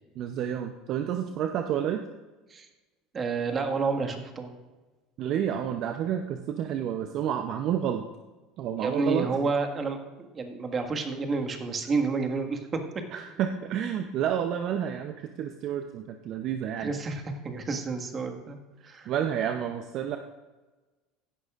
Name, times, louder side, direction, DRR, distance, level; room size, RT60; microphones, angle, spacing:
voice 1, 0.2-2.0 5.2-8.0 8.6-9.3 13.1-17.0 18.8-20.2, right 9 dB, 55° right, 7 dB, 0.7 m, -30 dB
voice 2, 3.1-4.6 8.8-12.8 16.8-18.6 18.8-19.1, right 4 dB, 35° right, 4 dB, 1.7 m, -30 dB
16.0 x 11.5 x 2.5 m, 1.2 s
hypercardioid pair, 75°, 0 cm